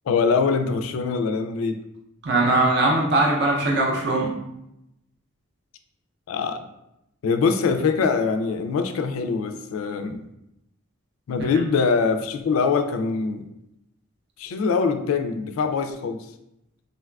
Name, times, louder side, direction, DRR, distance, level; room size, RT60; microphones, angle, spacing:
voice 1, 0.1-1.8 6.3-6.7 7.2-10.2 11.3-13.5 14.4-16.3, left 5 dB, 75° left, 7 dB, 0.3 m, -23 dB
voice 2, 2.2-4.3, right 2 dB, 50° right, -2 dB, 0.5 m, -20 dB
3.8 x 2.3 x 2.2 m, 0.85 s
head